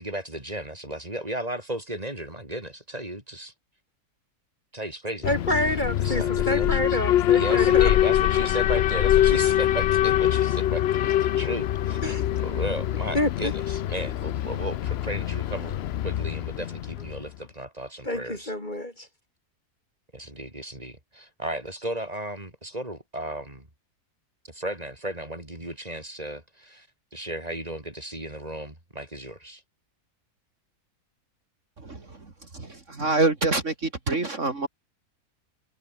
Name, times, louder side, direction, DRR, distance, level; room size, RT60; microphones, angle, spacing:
voice 1, 0.0-3.5 4.7-5.3 6.0-7.0 7.3-18.5 20.1-23.7 24.5-26.9 27.1-29.6, right 1 dB, 25° right, 5.2 m, -35 dB
Alarm, 5.2-17.3, left 12 dB, 65° left, 0.6 m, -24 dB
voice 2, 5.2-7.9 12.0-12.2 13.1-13.5 18.0-19.1, left 1 dB, 30° left, 4.2 m, -27 dB
voice 3, 31.8-32.2 32.5-34.7, right 3 dB, 50° right, 3.1 m, -26 dB
omnidirectional pair, 1.6 m